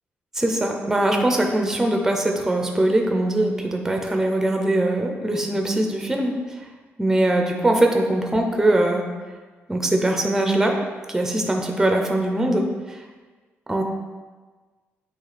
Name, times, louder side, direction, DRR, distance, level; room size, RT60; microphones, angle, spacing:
voice 1, 0.3-6.3 7.0-9.0 9.7-10.8 11.1-13.0 13.7-13.8, right 1 dB, 10° right, 2 dB, 0.6 m, -21 dB
8.3 x 3.2 x 4.1 m, 1.4 s
wide cardioid pair, 160°, 5 cm